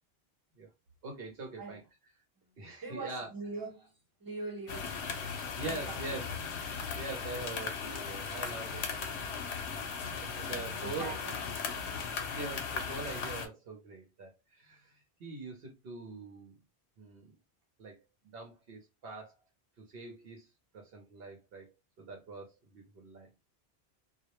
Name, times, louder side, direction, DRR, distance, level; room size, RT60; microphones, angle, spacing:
voice 1, 1.0-1.8 2.6-3.3 5.6-6.4 6.9-9.3 9.5-9.7 10.2-11.2 12.3-16.6 17.0-17.4 17.8-18.0 18.2-19.4 19.8-20.5 20.7-23.3, right 3 dB, 65° right, 0.8 m, -43 dB
voice 2, 2.8-5.0 5.6-6.1 10.4-11.6 11.9-12.2, right 3 dB, 20° right, 0.9 m, -43 dB
sound 1, 4.7-13.5, left 5 dB, 90° left, 0.8 m, -37 dB
2.2 x 2.0 x 2.9 m
omnidirectional pair, 1.1 m